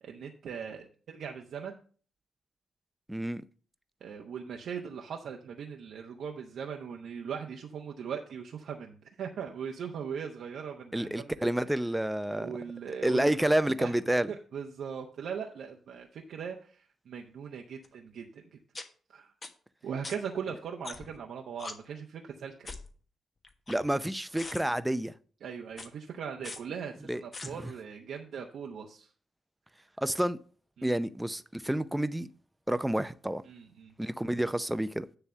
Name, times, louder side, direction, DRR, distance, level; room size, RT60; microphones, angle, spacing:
voice 1, 0.0-1.8 4.0-11.5 12.4-13.9 14.3-18.6 19.1-19.3 19.8-22.7 25.4-29.1 30.8-31.0 33.5-33.9, right 7 dB, 70° right, 0.8 m, -40 dB
voice 2, 3.1-3.4 10.9-12.5 13.0-14.3 23.7-25.1 27.1-27.7 30.0-30.4 30.8-32.3 32.7-33.4 34.0-35.1, right 1 dB, 10° right, 0.6 m, -29 dB
sound 1, 17.8-17.9 18.7-18.8 19.4-19.5 20.0-20.1 20.8-21.2 21.6-21.7 22.6-22.9 23.4-24.1 24.3-24.6 25.7-25.9 26.4-26.6 27.3-27.5, left 3 dB, 40° left, 1.3 m, -41 dB
9.7 x 3.3 x 6.8 m
hypercardioid pair, 40°, 0 cm